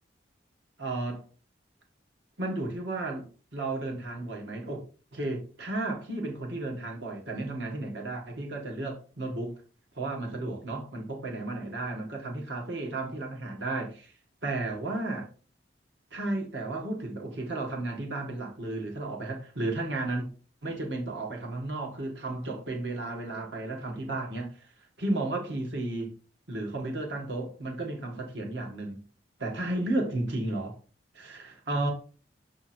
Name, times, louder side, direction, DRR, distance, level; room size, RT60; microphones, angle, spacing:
voice 1, 0.8-1.2 2.4-3.2 3.5-4.8 5.1-9.5 9.9-14.1 14.4-15.3 16.1-20.3 20.6-24.5 25.0-26.1 26.5-29.0 29.4-30.8 31.1-31.9, right 2 dB, 75° right, 1.8 m, -33 dB
7.6 x 3.8 x 4.4 m
head